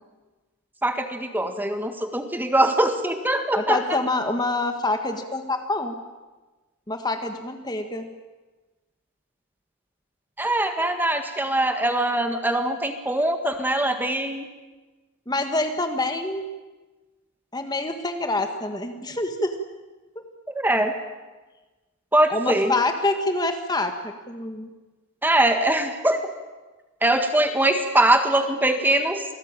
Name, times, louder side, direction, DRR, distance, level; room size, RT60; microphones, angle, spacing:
voice 1, 0.8-3.8 10.4-14.5 20.5-20.9 22.1-22.7 25.2-26.2 27.0-29.2, right 1 dB, 10° right, 7 dB, 1.6 m, -22 dB
voice 2, 3.6-6.0 6.9-8.1 15.3-16.4 17.5-19.6 20.1-20.2 22.3-24.7, left 2 dB, 20° left, 6 dB, 1.5 m, -26 dB
27.0 x 19.0 x 9.0 m, 1.2 s
head